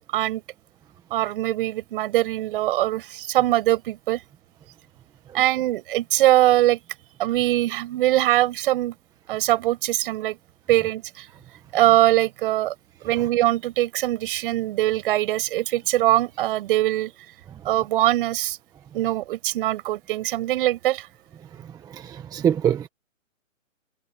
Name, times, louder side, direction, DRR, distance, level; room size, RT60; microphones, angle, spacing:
voice 1, 1.1-4.2 5.3-6.8 7.2-8.9 9.3-10.4 10.7-11.3 11.7-12.7 13.0-17.1 17.6-18.6 18.9-21.1, right 15 dB, 40° right, 7.3 m, -22 dB
voice 2, 21.9-22.9, right 9 dB, 10° right, 1.1 m, -23 dB
hypercardioid pair, 150°, 41 cm